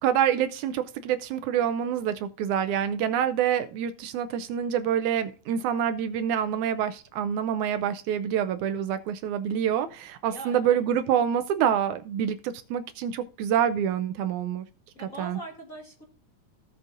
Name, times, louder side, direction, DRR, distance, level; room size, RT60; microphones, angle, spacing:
voice 1, 0.0-14.7 15.0-15.4, right 9 dB, 80° right, 1.9 m, -26 dB
voice 2, 10.3-10.6 14.9-16.0, right 2 dB, 35° left, 1.5 m, -41 dB
17.0 x 6.2 x 2.5 m
omnidirectional pair, 3.6 m